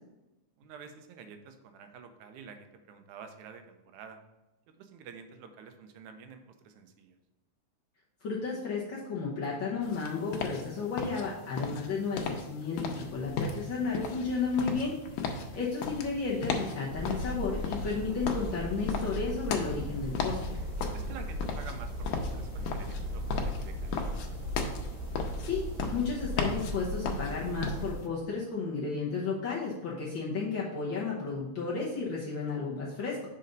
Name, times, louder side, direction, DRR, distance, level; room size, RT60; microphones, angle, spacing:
voice 1, 0.6-4.2 4.8-7.2 11.2-11.4 15.2-15.4 20.9-24.2, right 6 dB, 85° right, 7 dB, 2.1 m, -49 dB
voice 2, 8.2-15.0 15.3-20.4 25.4-25.6 25.9-33.3, left 4 dB, 60° left, -6 dB, 1.4 m, -33 dB
sound 1, 9.8-28.0, left 5 dB, 90° left, 2.2 m, -36 dB
sound 2, 13.0-21.0, left 1 dB, 5° right, 1.2 m, -50 dB
sound 3, 16.9-27.9, equal, 65° right, 1.7 m, -37 dB
6.6 x 4.2 x 5.2 m, 1.0 s
omnidirectional pair, 3.4 m